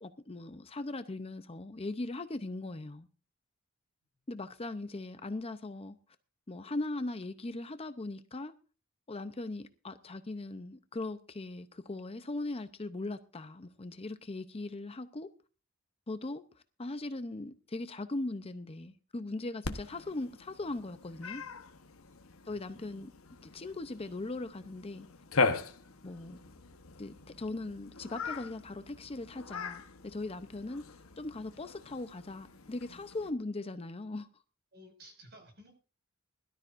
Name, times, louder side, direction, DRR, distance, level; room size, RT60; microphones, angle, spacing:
voice 1, 0.0-3.1 4.3-6.0 6.5-8.5 9.1-15.3 16.1-16.4 16.8-21.4 22.4-23.1 23.4-25.1 26.0-26.4 27.0-30.8 31.2-34.3, left 2 dB, 25° left, 0.6 m, -39 dB
Cat, 19.6-33.3, left 4 dB, 70° left, 1.1 m, -39 dB
voice 2, 34.7-35.7, equal, 50° right, 5.6 m, -55 dB
21.5 x 12.5 x 2.6 m
head